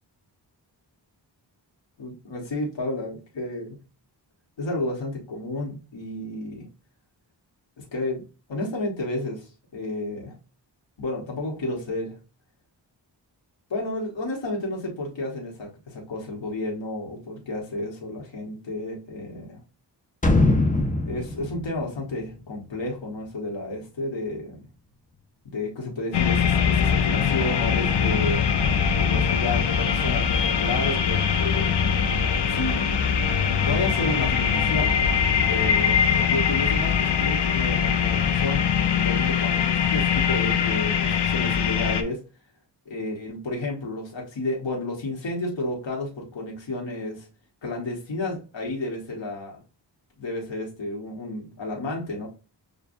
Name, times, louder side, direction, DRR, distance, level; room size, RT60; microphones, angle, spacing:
voice 1, 2.0-3.8 4.6-6.7 7.8-8.2 8.5-10.3 11.0-12.2 13.7-19.6 21.0-24.7 25.4-28.5 28.9-31.7 32.5-32.8 33.6-35.0 35.5-38.6 38.9-42.2 42.9-47.3 47.6-49.6 50.2-52.3, left 2 dB, 90° left, 1.3 m, -31 dB
sound 1, 20.2-23.0 23.4-23.5, left 2 dB, 20° left, 0.8 m, -23 dB
sound 2, 26.1-42.0, left 7 dB, 65° left, 0.6 m, -22 dB
6.6 x 2.3 x 2.6 m
wide cardioid pair, 75°, 43 cm